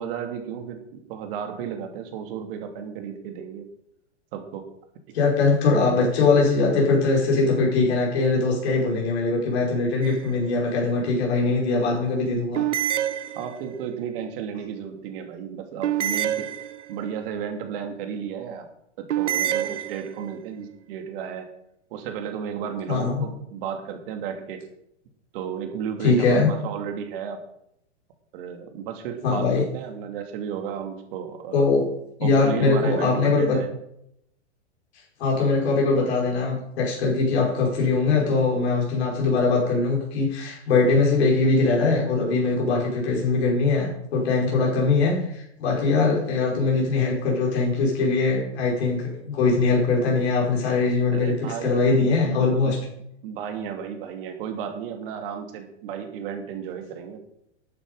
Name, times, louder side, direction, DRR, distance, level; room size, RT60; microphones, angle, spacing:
voice 1, 0.0-3.6 4.3-4.6 13.3-16.5 16.9-18.7 19.0-21.5 21.9-24.6 25.3-27.4 28.3-31.7 32.2-33.7 51.1-52.1 52.6-52.8 53.2-57.2, right 8 dB, 50° right, 5 dB, 2.7 m, -33 dB
voice 2, 5.1-12.6 22.9-23.2 26.0-26.5 29.2-29.6 31.5-31.8 32.2-33.6 35.2-52.8, left 3 dB, 60° left, -2 dB, 5.2 m, -21 dB
sound 1, 10.0-10.6 12.5-13.8 15.8-17.2 19.1-20.4, right 11 dB, 75° right, 0.9 m, -27 dB
11.5 x 9.6 x 5.5 m, 0.77 s
hypercardioid pair, 115°, 35 cm